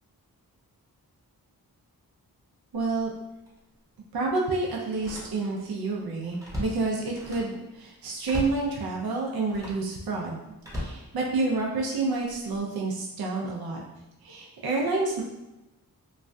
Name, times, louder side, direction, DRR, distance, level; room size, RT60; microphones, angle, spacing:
Slam, 2.7-3.0 3.5-3.6 4.9-5.7 6.0-7.6 8.2-8.7 9.4-9.9 10.6-11.7 12.3-12.6, left 1 dB, 10° right, 0.8 m, -37 dB
voice 1, 2.7-3.1 4.1-13.8 14.2-15.2, right 3 dB, 70° right, -2 dB, 0.5 m, -29 dB
3.1 x 2.2 x 2.5 m, 0.97 s
wide cardioid pair, 75°, 38 cm